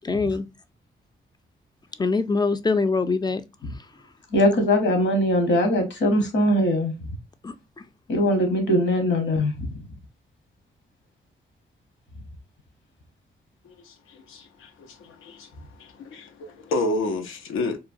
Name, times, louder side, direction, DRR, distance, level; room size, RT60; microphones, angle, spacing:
voice 1, 0.0-0.5 2.0-3.4 3.8-3.9 7.4-7.9, left 4 dB, 20° left, 0.4 m, -24 dB
voice 2, 4.3-6.9 8.1-9.7, left 1 dB, 65° left, 1.1 m, -21 dB
voice 3, 13.6-15.5 15.8-17.8, left 2 dB, 85° left, 0.5 m, -30 dB
3.0 x 2.2 x 2.6 m
supercardioid pair, 55°, 21 cm